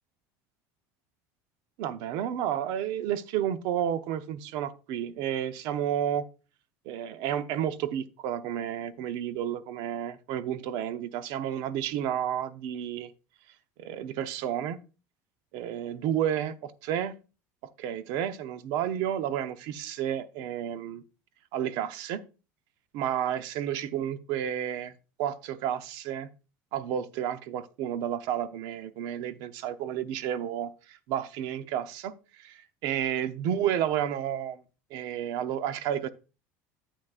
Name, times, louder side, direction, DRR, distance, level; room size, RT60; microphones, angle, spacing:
voice 1, 1.8-6.2 6.9-13.1 13.8-14.8 15.5-17.1 17.8-21.0 21.5-22.2 22.9-24.9 25.2-26.3 26.7-34.6 34.9-36.1, right 10 dB, 65° right, 0.8 m, -31 dB
9.7 x 8.3 x 2.4 m
cardioid pair, 140°, 8 cm